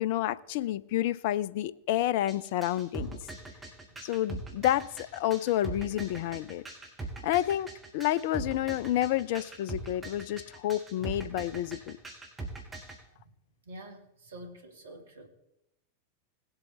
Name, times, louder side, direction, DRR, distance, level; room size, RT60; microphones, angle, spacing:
voice 1, 0.0-3.2 4.0-6.6 7.2-7.7 7.9-12.0, left 13 dB, 50° left, 17 dB, 0.4 m, -29 dB
sound 1, 2.3-13.0, right 3 dB, 15° right, 2.2 m, -41 dB
voice 2, 13.7-15.3, right 1 dB, 65° right, 5 dB, 1.6 m, -47 dB
19.0 x 8.1 x 3.3 m, 0.84 s
figure-of-eight pair, 90°, 0 cm